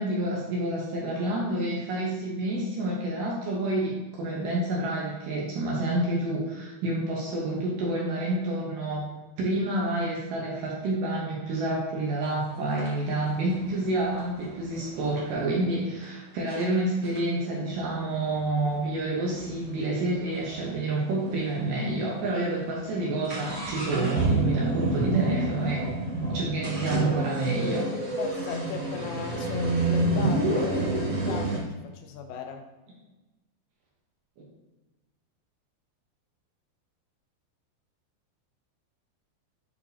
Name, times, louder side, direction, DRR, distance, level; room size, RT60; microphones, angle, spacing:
voice 1, 0.0-9.1 9.4-25.8 26.3-27.9, right 2 dB, 70° right, -3 dB, 2.2 m, -28 dB
sound 1, 12.2-12.3 12.8-15.4 16.0-16.1 16.5-16.6 17.0-20.7 21.0-21.1 21.3-21.4 22.0-22.1 22.4-31.6, right 2 dB, 50° right, 0.9 m, -29 dB
voice 2, 28.2-32.6, left 6 dB, 80° left, 4 dB, 2.5 m, -38 dB
8.5 x 4.4 x 2.7 m, 1.1 s
omnidirectional pair, 4.8 m